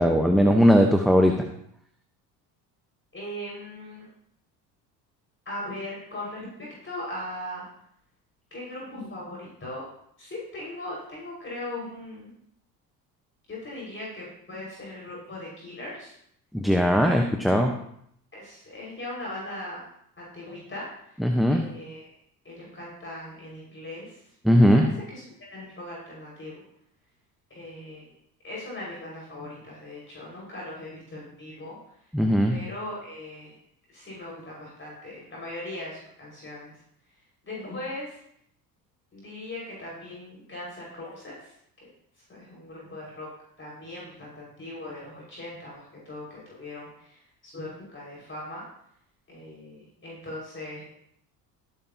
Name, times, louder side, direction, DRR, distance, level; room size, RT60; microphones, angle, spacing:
voice 1, 0.0-1.5 16.5-17.7 21.2-21.6 24.4-24.9 32.1-32.6, equal, ahead, 3 dB, 1.1 m, -19 dB
voice 2, 3.1-4.1 5.5-7.6 8.5-9.8 10.2-12.3 13.5-16.2 17.0-17.7 18.3-19.8 20.2-21.2 21.5-22.1 22.4-24.2 24.6-26.6 27.5-28.1 28.4-31.9 32.5-33.5 33.9-36.7 37.4-38.2 39.1-41.5 42.3-43.3 43.6-48.6 49.3-50.9, left 1 dB, 25° left, -5 dB, 5.7 m, -39 dB
16.5 x 9.3 x 3.0 m, 0.70 s
hypercardioid pair, 65°, 50 cm